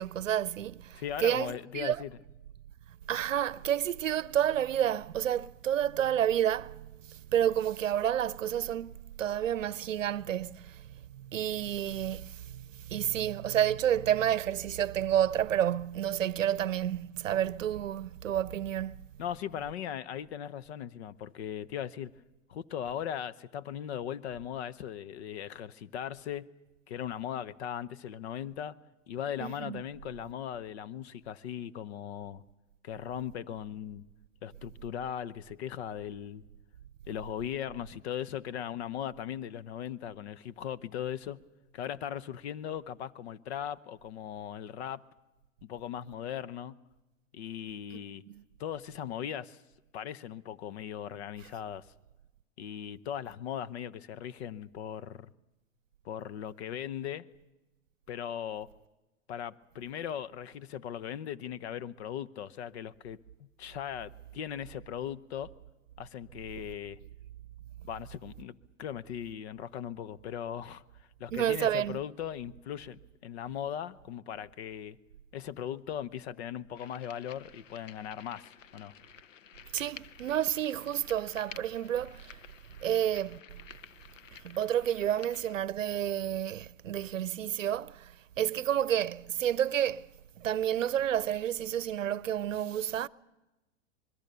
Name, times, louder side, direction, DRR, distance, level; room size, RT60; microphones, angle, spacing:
voice 1, 0.0-2.0 3.1-19.0 29.4-29.8 48.3-48.4 71.3-72.0 79.7-82.4 82.8-83.6 84.4-90.1 90.4-93.1, right 10 dB, 85° right, 0.7 m, -30 dB
voice 2, 0.9-2.1 19.2-22.1 22.5-26.5 26.9-28.7 29.1-32.4 32.8-34.1 34.4-36.4 37.1-41.4 41.7-45.0 45.6-46.8 47.3-48.2 48.6-49.6 49.9-51.9 52.6-55.3 56.0-57.3 58.1-58.7 59.3-65.5 66.0-67.0 67.8-75.0 75.3-78.9, left 9 dB, 55° left, 1.0 m, -38 dB
sound 1, 76.7-85.5, left 8 dB, 80° left, 0.9 m, -52 dB
25.5 x 22.0 x 6.9 m
hypercardioid pair, 115°, 38 cm